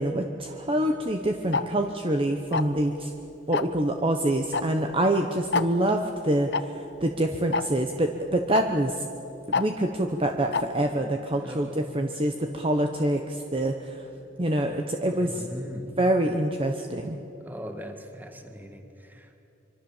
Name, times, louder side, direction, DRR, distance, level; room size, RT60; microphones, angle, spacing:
voice 1, 0.0-3.1 3.5-9.1 9.5-14.0 14.4-15.5 16.0-17.2, right 1 dB, 30° right, 4 dB, 1.0 m, -26 dB
Tick-tock, 1.5-1.6 2.5-2.8 3.5-3.8 4.5-4.6 4.9-5.0 5.5-5.7 6.5-6.6 7.5-7.6 8.5-8.6 9.5-9.6 10.5-10.6, left 4 dB, 65° left, 0.9 m, -25 dB
voice 2, 11.3-11.9 15.1-15.9 17.4-19.4, equal, 10° right, 5 dB, 1.9 m, -40 dB
25.5 x 24.0 x 7.3 m, 2.9 s
head